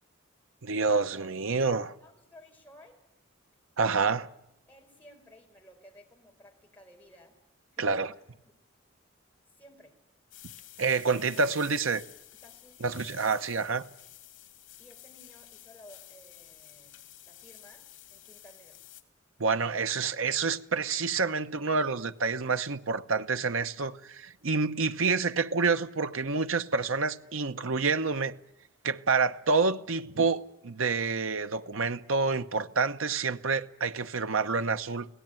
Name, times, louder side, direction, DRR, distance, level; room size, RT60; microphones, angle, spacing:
voice 1, 0.6-1.9 3.8-4.3 7.8-8.1 10.8-12.0 12.8-13.9 19.4-28.3 28.8-35.1, right 4 dB, 85° right, 1.0 m, -28 dB
voice 2, 2.0-3.0 4.7-7.4 7.7-8.1 8.4-8.6 9.5-10.0 12.3-12.8 14.8-17.0 17.2-18.8, left 1 dB, 10° left, 4.7 m, -56 dB
sound 1, 10.3-19.0, left 14 dB, 80° left, 2.7 m, -51 dB
25.0 x 18.0 x 9.1 m
head